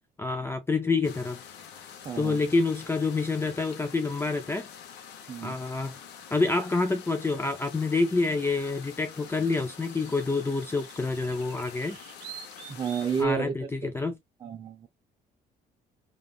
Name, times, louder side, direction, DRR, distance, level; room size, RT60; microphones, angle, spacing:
voice 1, 0.2-1.4 2.2-4.7 5.4-6.0 6.3-12.0 13.2-14.2, left 3 dB, 15° left, 0.4 m, -27 dB
sound 1, 1.0-13.2, left 8 dB, 80° left, 0.8 m, -46 dB
voice 2, 2.0-2.4 5.3-5.6 12.7-13.9 14.4-14.9, right 6 dB, 25° right, 0.6 m, -31 dB
sound 2, 6.9-7.0 8.6-13.2, right 9 dB, 85° right, 0.8 m, -49 dB
3.5 x 2.4 x 2.3 m
cardioid pair, 110°, 17 cm